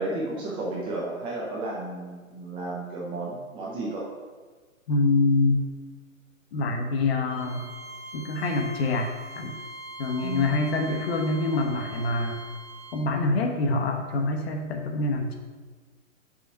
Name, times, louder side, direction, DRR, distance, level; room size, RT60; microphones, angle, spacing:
voice 1, 0.0-4.1 10.2-10.7, right 2 dB, 15° right, -4 dB, 0.7 m, -33 dB
voice 2, 4.9-5.6 6.5-7.7 8.1-9.6 10.0-12.4 12.9-15.3, left 2 dB, 45° left, 3 dB, 1.1 m, -25 dB
Bowed string instrument, 7.3-13.0, right 1 dB, 75° right, 1.5 m, -42 dB
5.5 x 5.5 x 4.6 m, 1.4 s
hypercardioid pair, 135°, 41 cm